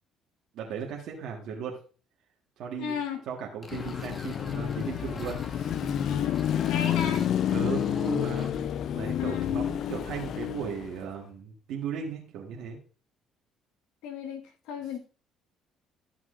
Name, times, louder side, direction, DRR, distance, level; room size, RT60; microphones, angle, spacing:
voice 1, 0.5-1.8 2.6-2.9 3.3-5.9 7.5-8.7 8.9-12.8, right 7 dB, 70° right, -2 dB, 1.5 m, -37 dB
voice 2, 2.8-3.2 6.0-7.3 9.2-9.5 14.0-15.0, left 8 dB, 85° left, 5 dB, 1.6 m, -34 dB
sound 1, 3.6-8.5, left 2 dB, 25° left, 1.3 m, -46 dB
Car passing by / Traffic noise roadway noise / Engine, 3.7-11.0, left 10 dB, 60° left, 0.4 m, -29 dB
13.5 x 5.9 x 2.5 m, 0.38 s
cardioid pair, 90°, 0 cm